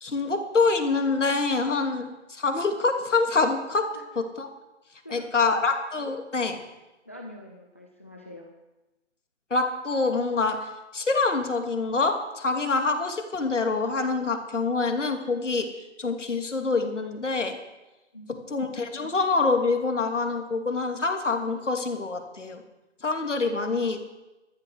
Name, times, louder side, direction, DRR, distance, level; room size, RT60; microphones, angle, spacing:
voice 1, 0.0-3.9 4.2-4.5 5.1-6.6 9.5-15.7 16.0-17.6 18.5-22.6 23.0-24.0, left 3 dB, 85° left, 5 dB, 2.8 m, -26 dB
voice 2, 5.0-5.7 7.1-8.5 18.1-18.8, equal, 10° left, 2 dB, 0.5 m, -44 dB
13.5 x 13.0 x 6.3 m, 1.0 s
hypercardioid pair, 160°, 35 cm